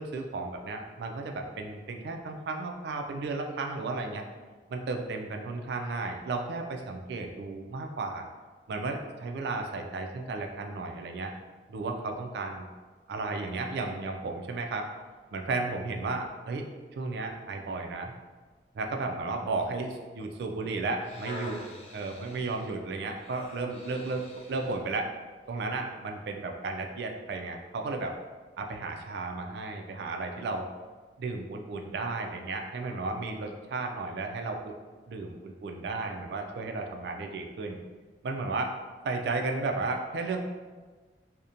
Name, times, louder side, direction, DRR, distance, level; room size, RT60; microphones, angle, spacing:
voice 1, 0.0-4.2 4.7-8.2 8.7-11.3 11.7-12.7 13.1-14.9 15.3-16.7 17.0-18.1 18.7-21.6 21.9-24.2 24.5-25.1 25.5-28.1 28.6-30.6 31.2-34.7 35.1-37.8 38.2-38.7 39.0-40.4, right 3 dB, 65° right, 3 dB, 0.3 m, -34 dB
sound 1, 21.0-24.9 25.5-25.6, left 1 dB, 35° left, 0.4 m, -46 dB
2.8 x 2.1 x 2.5 m, 1.4 s
head